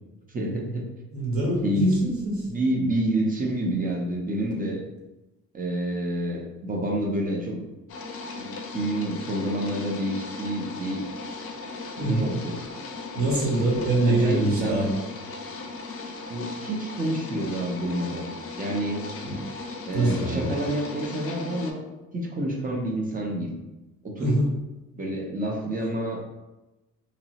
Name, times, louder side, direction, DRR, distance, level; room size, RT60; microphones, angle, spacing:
voice 1, 0.3-0.9 1.6-1.9 2.4-4.8 5.5-7.6 8.4-11.1 11.9-12.6 14.1-14.9 16.3-18.3 18.6-19.0 19.9-21.8 22.1-23.5 24.0-24.4 25.0-26.2, right 1 dB, 30° right, 0 dB, 0.6 m, -28 dB
voice 2, 1.1-2.4 12.0-12.3 13.1-14.9 19.2-19.4 19.9-20.5 24.2-24.5, right 1 dB, 45° right, -4 dB, 1.2 m, -24 dB
sound 1, 7.9-21.7, left 3 dB, 50° left, 0.5 m, -37 dB
2.9 x 2.0 x 2.8 m, 1.0 s
cardioid pair, 90°, 30 cm